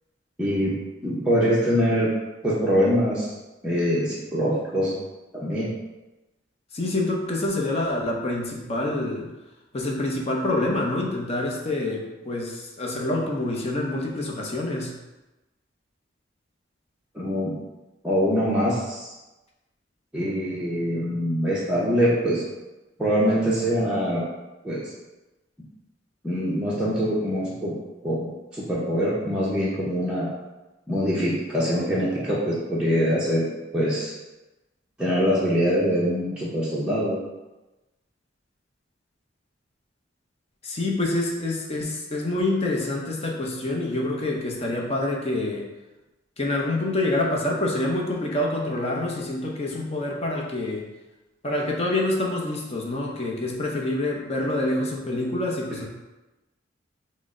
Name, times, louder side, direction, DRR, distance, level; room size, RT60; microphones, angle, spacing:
voice 1, 0.4-0.8 1.0-2.1 2.4-3.3 3.6-4.9 5.3-5.7 17.1-17.5 18.0-19.1 20.1-22.4 23.0-24.2 24.6-24.8 26.2-27.7 28.0-28.3 28.5-30.3 30.9-33.5 33.7-34.1 35.0-37.2, equal, 5° right, -9 dB, 0.7 m, -23 dB
voice 2, 6.7-9.3 9.7-14.9 40.6-45.6 46.4-50.8 51.4-55.9, left 2 dB, 35° left, -1 dB, 0.7 m, -26 dB
6.1 x 2.1 x 3.6 m, 1.1 s
head